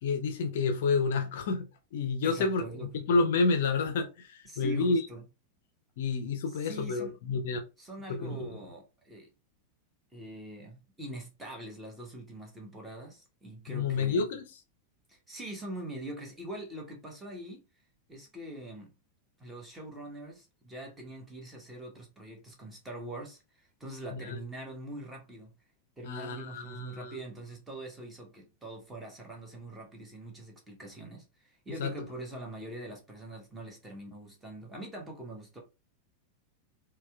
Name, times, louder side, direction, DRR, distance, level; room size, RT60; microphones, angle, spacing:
voice 1, 0.0-5.1 6.0-7.6 8.1-8.5 13.7-14.6 24.1-24.4 26.0-27.2 31.8-31.9, left 4 dB, 55° left, 0.5 m, -29 dB
voice 2, 2.2-2.9 4.5-5.2 6.5-7.2 7.8-9.3 10.1-14.2 15.1-17.6 18.1-18.9 19.4-25.5 26.0-35.6, right 1 dB, 10° right, 1.1 m, -43 dB
4.2 x 2.2 x 2.2 m
figure-of-eight pair, 90°, 0 cm